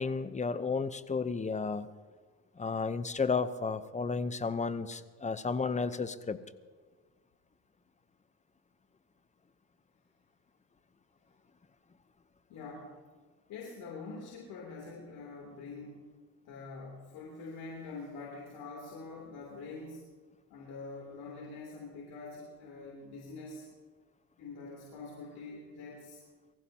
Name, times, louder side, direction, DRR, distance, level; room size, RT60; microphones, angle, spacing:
voice 1, 0.0-1.9 2.6-6.4, left 4 dB, 15° left, 13 dB, 0.8 m, -32 dB
voice 2, 12.5-13.0 13.5-16.0 16.4-20.0 20.5-23.6 24.4-26.2, left 3 dB, 70° left, -2 dB, 3.2 m, -45 dB
23.5 x 15.5 x 2.9 m, 1.5 s
supercardioid pair, 85°, 40 cm